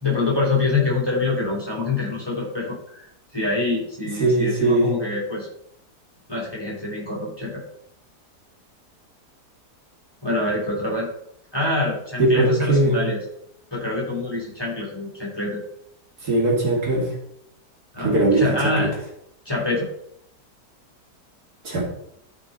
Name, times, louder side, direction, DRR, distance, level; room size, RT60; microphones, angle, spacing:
voice 1, 0.0-3.1 3.3-5.5 6.3-7.6 10.2-11.1 11.5-13.2 13.7-15.6 17.9-18.9 19.5-19.9, left 3 dB, 15° left, -5 dB, 3.6 m, -25 dB
voice 2, 4.2-4.9 12.2-13.0 16.2-17.1 18.0-18.7 21.6-21.8, right 2 dB, 65° right, -2 dB, 2.9 m, -19 dB
13.5 x 5.4 x 4.0 m, 0.74 s
omnidirectional pair, 1.8 m